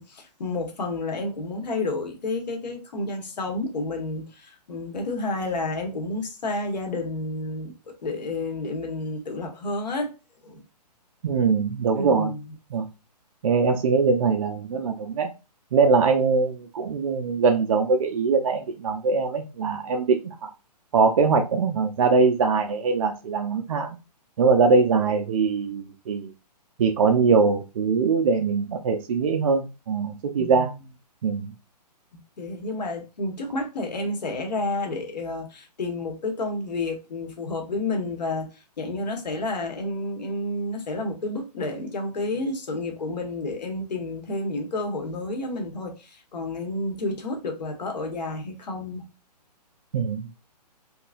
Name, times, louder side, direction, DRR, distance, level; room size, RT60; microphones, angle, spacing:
voice 1, 0.0-10.1 10.4-10.6 11.9-12.4 30.4-30.6 32.4-38.5 38.8-49.1, left 2 dB, 75° left, 1.2 m, -30 dB
voice 2, 11.2-12.3 12.7-12.9 13.4-15.3 15.7-20.5 20.9-23.9 24.4-26.3 26.8-30.7 31.2-31.5 49.9-50.4, right 4 dB, 50° right, 0.5 m, -22 dB
3.7 x 2.3 x 2.5 m
hypercardioid pair, 160°, 21 cm